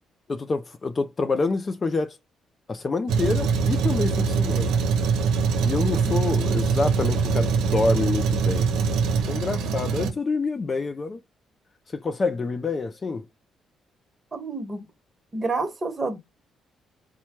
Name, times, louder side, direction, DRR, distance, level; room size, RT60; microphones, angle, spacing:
voice 1, 0.3-2.2 2.7-4.7 5.6-8.7 9.3-11.2 11.9-13.2, left 3 dB, 35° left, 0.4 m, -27 dB
Truck, 3.1-10.1, right 5 dB, 90° right, 0.7 m, -23 dB
voice 2, 14.3-14.8 15.3-16.2, right 3 dB, 30° right, 1.1 m, -29 dB
4.3 x 2.2 x 2.9 m
cardioid pair, 90°, 0 cm